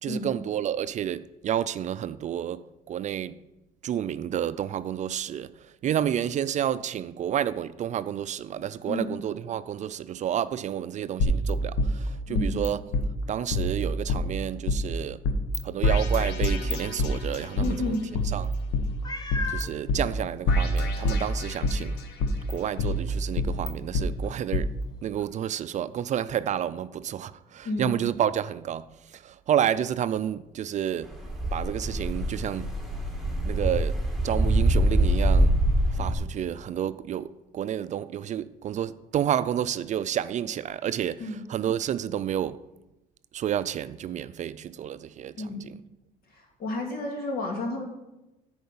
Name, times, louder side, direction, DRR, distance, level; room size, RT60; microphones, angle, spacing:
voice 1, 0.0-2.6 2.9-3.4 3.8-5.5 5.8-12.8 13.3-15.2 15.6-18.0 18.3-18.5 19.5-22.0 22.5-24.7 25.0-28.9 29.1-31.1 31.5-32.7 33.4-35.5 35.9-41.2 41.5-42.6 43.3-45.7, right 10 dB, 45° right, 0.4 m, -30 dB
sound 1, 11.2-12.7 12.9-13.0 13.5-14.8 15.2-15.6 15.8-17.7 18.1-19.6 19.9-20.0 20.5-21.8 22.2-24.1 24.5-24.6, left 1 dB, 90° left, 1.1 m, -26 dB
voice 2, 12.3-12.6 17.6-18.0 27.6-28.0 41.2-41.4 45.4-45.6 46.3-47.8, left 2 dB, 60° left, 2.4 m, -31 dB
Meow, 19.0-19.7 20.5-20.6 21.1-21.2 25.2-25.3, left 3 dB, 25° left, 1.0 m, -34 dB
sound 2, 31.1-36.1, right 1 dB, ahead, 1.8 m, -24 dB
9.5 x 4.7 x 6.9 m
cardioid pair, 110°, 17 cm